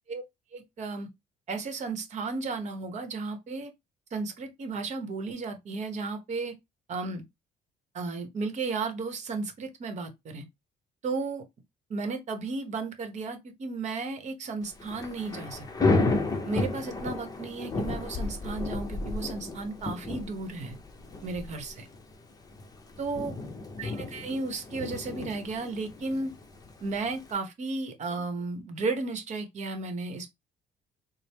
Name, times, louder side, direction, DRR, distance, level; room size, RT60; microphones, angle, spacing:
voice 1, 0.5-1.1 1.5-3.7 4.1-6.5 6.9-7.2 7.9-10.4 11.0-11.4 11.9-15.9 16.4-20.8 21.2-21.9 23.0-23.3 23.8-26.3 26.8-30.3, right 3 dB, 45° right, 0.9 m, -34 dB
Thunder / Rain, 14.7-27.3, left 3 dB, 20° left, 0.7 m, -33 dB
4.1 x 2.0 x 3.4 m
cardioid pair, 110°, 17 cm